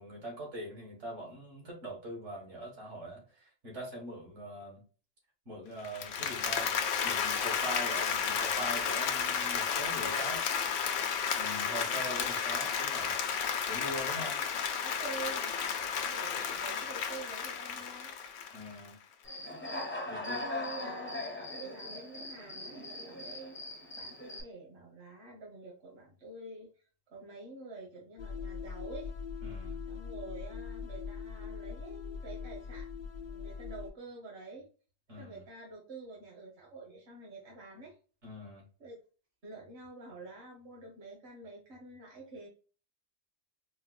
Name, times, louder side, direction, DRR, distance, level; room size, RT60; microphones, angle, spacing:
voice 1, 0.0-4.8 5.5-6.7 7.0-10.4 11.4-13.2 13.7-14.4 18.5-19.0 20.1-20.5 29.4-29.8 35.1-35.4 38.2-38.6, equal, 75° right, -1 dB, 2.0 m, -42 dB
Applause, 5.8-18.9, left 7 dB, 80° left, 1.0 m, -32 dB
voice 2, 10.0-10.7 11.3-12.2 14.8-15.8 16.1-18.1 20.1-29.1 29.9-34.7 35.1-38.0 38.8-39.0 39.4-42.5, right 3 dB, 60° right, -3 dB, 1.3 m, -47 dB
Human voice / Cricket, 19.2-24.4, left 2 dB, 15° left, 0.5 m, -40 dB
sound 1, 28.2-33.9, left 5 dB, 60° left, 0.6 m, -41 dB
4.6 x 2.1 x 2.3 m, 0.37 s
omnidirectional pair, 1.3 m